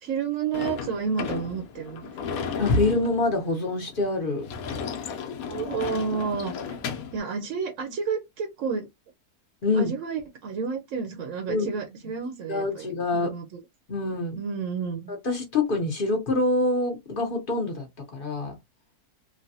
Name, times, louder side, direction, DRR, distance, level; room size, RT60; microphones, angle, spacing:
voice 1, 0.0-2.4 5.5-6.8 7.1-8.9 9.7-13.6 14.4-15.2, right 6 dB, 65° right, 0.9 m, -31 dB
Sliding door / Slam, 0.5-7.2, left 6 dB, 70° left, 1.0 m, -34 dB
voice 2, 2.6-4.4 9.6-9.9 11.5-12.0 12.5-13.3 13.9-14.4 15.1-18.6, left 2 dB, 40° left, 0.8 m, -26 dB
3.2 x 2.2 x 2.7 m
omnidirectional pair, 1.7 m